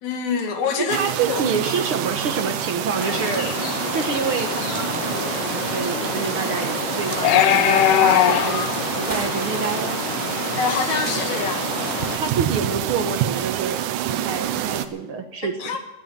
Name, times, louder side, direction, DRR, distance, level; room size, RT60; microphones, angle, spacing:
voice 1, 0.0-1.4 10.6-11.8 15.4-15.8, left 5 dB, 60° left, 5 dB, 3.3 m, -26 dB
voice 2, 0.9-3.5 3.9-8.7 9.0-10.0 12.2-13.8 14.1-15.5, right 5 dB, 60° right, 6 dB, 1.4 m, -27 dB
Wind in the trees, 0.9-14.9, right 11 dB, 75° right, 2.4 m, -27 dB
sound 1, 3.0-12.2, left 10 dB, 80° left, 2.6 m, -24 dB
sound 2, 4.8-13.9, right 1 dB, 10° right, 1.9 m, -46 dB
17.5 x 9.8 x 7.2 m, 1.0 s
omnidirectional pair, 3.9 m